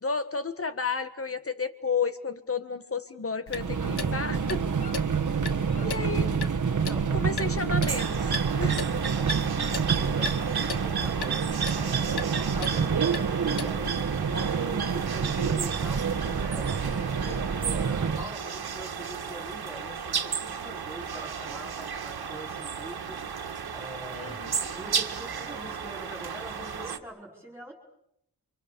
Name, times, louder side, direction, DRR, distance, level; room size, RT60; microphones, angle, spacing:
voice 1, 0.0-4.6 5.8-6.3 7.1-8.2 8.6-8.8 24.1-24.6, left 5 dB, 35° left, 10 dB, 1.7 m, -32 dB
Clock, 3.5-14.0, left 5 dB, 75° left, 1.6 m, -40 dB
Subway metro underground, 3.5-18.3, right 6 dB, 50° right, 1.4 m, -28 dB
voice 2, 6.8-7.9 9.1-13.0 13.4-23.2 23.7-24.4 24.7-27.7, right 1 dB, 5° right, -1 dB, 5.0 m, -44 dB
sound 1, 7.8-27.0, right 6 dB, 70° right, 2.0 m, -34 dB
29.5 x 25.5 x 7.0 m, 0.76 s
wide cardioid pair, 135°, 39 cm